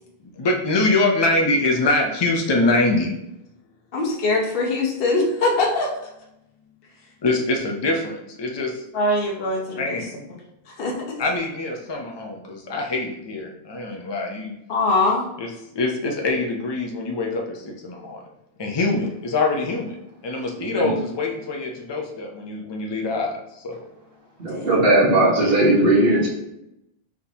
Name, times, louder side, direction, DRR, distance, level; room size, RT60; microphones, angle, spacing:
voice 1, 0.2-3.2 7.2-8.8 9.8-10.1 11.2-14.6 15.4-15.5 15.7-18.2 18.6-20.0 20.2-23.8 25.4-25.6, left 2 dB, 30° left, 1 dB, 0.5 m, -24 dB
voice 2, 3.9-5.9 8.9-10.0 10.8-11.2 14.7-15.3 24.5-24.8, left 2 dB, 65° left, -1 dB, 1.0 m, -22 dB
voice 3, 24.4-26.3, right 1 dB, 70° right, -5 dB, 1.5 m, -18 dB
4.2 x 3.6 x 2.8 m, 0.86 s
omnidirectional pair, 1.0 m